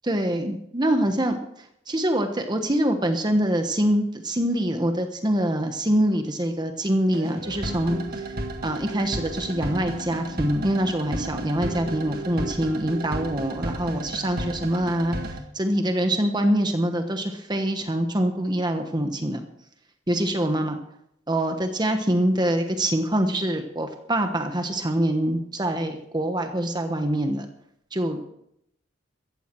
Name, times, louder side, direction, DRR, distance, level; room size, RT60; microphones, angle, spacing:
voice 1, 0.1-1.4 1.9-8.0 8.6-15.2 15.5-19.4 20.1-20.8 21.3-27.4 27.9-28.2, right 1 dB, 25° right, 6 dB, 1.2 m, -24 dB
Happy Theme, 7.1-15.4, right 1 dB, 55° right, 1.9 m, -33 dB
15.0 x 15.0 x 4.6 m, 0.76 s
head